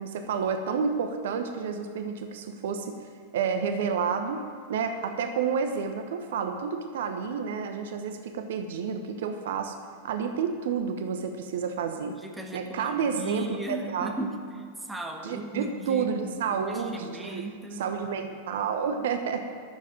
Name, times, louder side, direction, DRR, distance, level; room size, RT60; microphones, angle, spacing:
voice 1, 0.0-4.4 4.7-9.7 10.0-12.2 12.5-14.1 15.2-17.5 17.8-19.4, right 6 dB, 60° right, 6 dB, 1.0 m, -30 dB
voice 2, 12.0-14.4 14.8-16.2 16.7-17.9, right 2 dB, 5° right, 2 dB, 1.6 m, -37 dB
11.5 x 7.4 x 9.1 m, 2.1 s
figure-of-eight pair, 90°, 0 cm